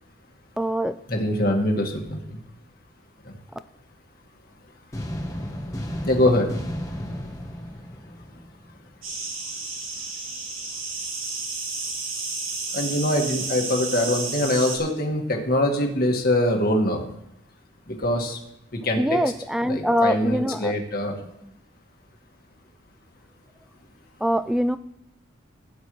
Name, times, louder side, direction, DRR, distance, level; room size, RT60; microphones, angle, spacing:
voice 1, 0.6-1.0 19.0-20.7 21.4-21.5 24.2-24.8, equal, ahead, 12 dB, 0.3 m, -23 dB
voice 2, 1.1-2.4 3.3-3.4 6.0-6.5 12.7-17.0 17.9-18.4 18.8-19.2 19.7-21.1, left 1 dB, 45° left, 1 dB, 1.9 m, -23 dB
sound 1, 4.9-8.9, equal, 15° left, 1.1 m, -33 dB
sound 2, 9.0-14.8, right 3 dB, 90° right, 3.3 m, -32 dB
17.0 x 9.4 x 3.2 m, 0.79 s
head